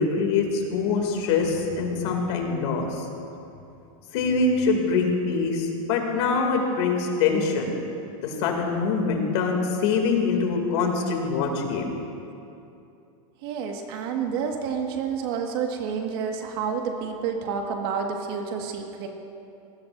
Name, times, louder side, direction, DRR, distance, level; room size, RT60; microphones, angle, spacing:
voice 1, 0.0-3.1 4.1-7.7 8.2-11.9, left 4 dB, 50° left, 2 dB, 2.7 m, -24 dB
voice 2, 13.4-19.1, right 6 dB, 45° right, 2 dB, 1.8 m, -29 dB
26.0 x 19.5 x 2.7 m, 2.7 s
supercardioid pair, 170°, 18 cm